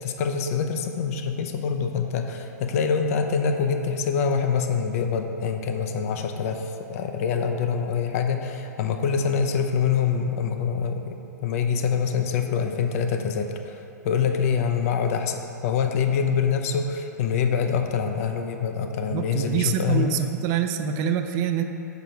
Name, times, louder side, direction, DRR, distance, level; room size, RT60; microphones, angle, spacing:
voice 1, 0.0-20.1, left 6 dB, 55° left, 6 dB, 0.5 m, -25 dB
voice 2, 19.1-21.6, right 8 dB, 40° right, 6 dB, 0.3 m, -25 dB
4.8 x 4.6 x 5.1 m, 2.8 s
hypercardioid pair, 115°, 9 cm